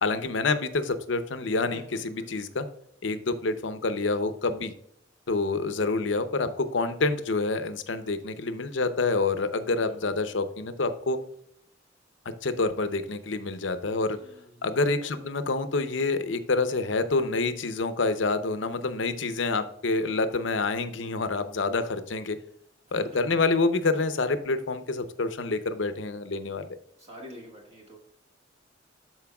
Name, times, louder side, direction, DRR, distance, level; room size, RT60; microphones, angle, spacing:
voice 1, 0.0-2.6 3.0-4.7 5.3-11.2 12.4-14.2 14.6-22.4 22.9-26.7, left 3 dB, 75° left, 11 dB, 0.7 m, -27 dB
voice 2, 1.7-2.5 9.7-10.2 13.9-15.1 22.9-23.4 27.0-28.0, equal, 35° right, -1 dB, 1.7 m, -48 dB
13.0 x 4.5 x 2.3 m, 0.72 s
head